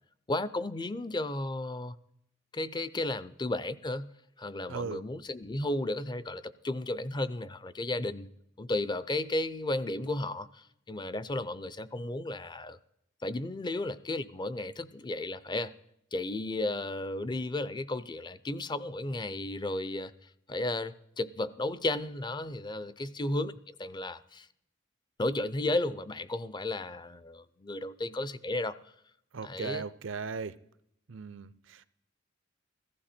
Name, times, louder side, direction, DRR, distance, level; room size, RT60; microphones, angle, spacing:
voice 1, 0.3-2.0 2.5-4.1 4.4-8.3 8.6-12.8 13.2-15.7 16.1-24.5 25.2-28.7 29.4-29.8, left 2 dB, 25° left, 0.5 m, -34 dB
voice 2, 4.7-5.0 29.3-30.5 31.1-31.8, right 5 dB, 80° right, 0.6 m, -38 dB
15.5 x 14.5 x 4.3 m
head